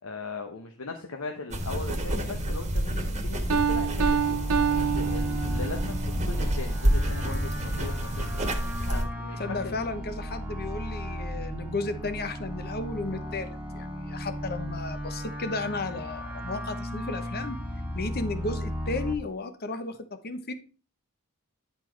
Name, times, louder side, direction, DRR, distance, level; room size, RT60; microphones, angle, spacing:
voice 1, 0.0-4.4 4.8-9.7, left 3 dB, 70° left, 0.9 m, -39 dB
sound 1, 1.5-9.0, right 1 dB, 30° right, 1.4 m, -29 dB
sound 2, 3.3-19.1, equal, 5° right, 1.1 m, -36 dB
Piano, 3.5-6.0, right 7 dB, 80° right, 0.8 m, -27 dB
voice 2, 9.4-17.6 17.9-20.0 20.2-20.5, left 3 dB, 45° left, 0.9 m, -34 dB
10.0 x 4.2 x 4.5 m
head